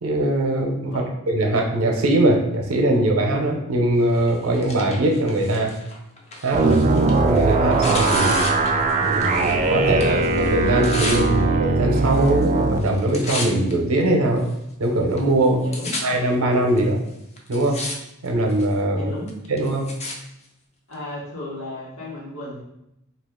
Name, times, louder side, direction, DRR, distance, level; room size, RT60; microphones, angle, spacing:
voice 1, 0.0-5.7 6.4-6.8 7.2-8.4 9.0-14.4 14.8-15.6 16.0-17.0 17.5-17.8 18.2-19.1 19.5-19.9, right 1 dB, 85° right, 2 dB, 0.6 m, -21 dB
Tearing, 4.1-9.6 9.9-11.2 12.0-12.5 12.8-13.7 14.4-14.5 15.2-15.3 15.4-16.0 16.8-16.9 17.4-18.0 18.3-18.7 19.3-20.2 20.9-21.0, left 2 dB, 30° left, 0.5 m, -32 dB
sound 1, 6.5-12.8, right 3 dB, 35° right, 0.3 m, -20 dB
voice 2, 15.6-16.0 18.9-19.3 20.9-22.6, left 1 dB, 80° left, -5 dB, 1.1 m, -34 dB
2.8 x 2.4 x 3.6 m, 0.83 s
head